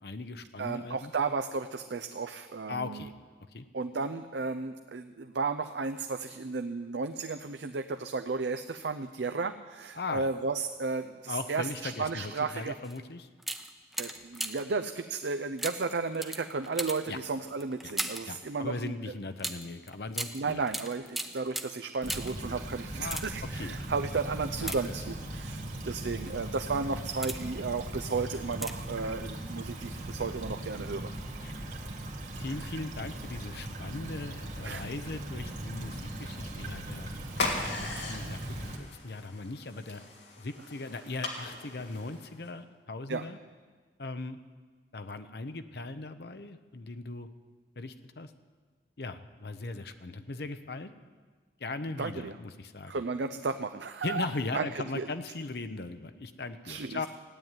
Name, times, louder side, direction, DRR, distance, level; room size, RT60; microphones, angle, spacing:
voice 1, 0.0-1.1 2.7-3.1 3.5-3.7 10.0-10.3 11.3-13.3 17.1-17.2 17.8-17.9 18.2-20.7 23.0-23.2 23.5-23.7 24.6-24.8 31.4-31.5 32.4-37.1 37.7-40.0 40.4-43.4 44.0-44.4 44.9-47.3 47.8-48.3 49.0-50.9 51.6-53.0 54.0-57.1, left 3 dB, 60° left, 9 dB, 0.8 m, -38 dB
voice 2, 0.6-3.1 3.7-12.8 14.0-18.9 20.3-31.1 34.6-34.9 43.1-43.2 52.0-52.3 52.9-54.3 54.5-54.7 54.9-55.1 56.6-57.0, right 4 dB, 80° right, 7 dB, 0.6 m, -34 dB
sound 1, 12.8-13.0 13.4-14.8 15.6-18.4 19.4-22.5 22.9-23.6 24.5-25.4 26.1-26.3 26.8-27.6 28.5-29.0 29.2-29.3, right 1 dB, ahead, 0.7 m, -38 dB
Stream / Trickle dribble, 22.0-38.8, right 1 dB, 45° right, 1.8 m, -39 dB
sound 2, 37.3-42.5, left 3 dB, 85° left, 2.7 m, -38 dB
15.5 x 9.6 x 9.0 m, 1.4 s
head